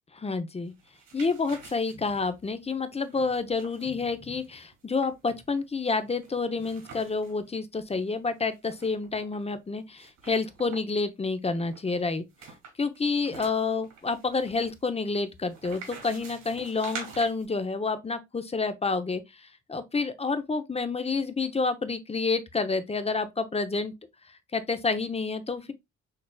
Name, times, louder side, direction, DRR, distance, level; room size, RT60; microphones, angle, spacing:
voice 1, 0.1-0.7 1.1-12.2 12.8-23.9 24.3-25.7, left 4 dB, 20° left, 0.7 m, -29 dB
Glossy Journal, 0.7-7.4 7.8-7.9 8.1-9.4 10.0-11.0 11.7-17.4, right 5 dB, 75° right, 3.0 m, -47 dB
6.6 x 3.0 x 2.2 m
cardioid pair, 90°, 30 cm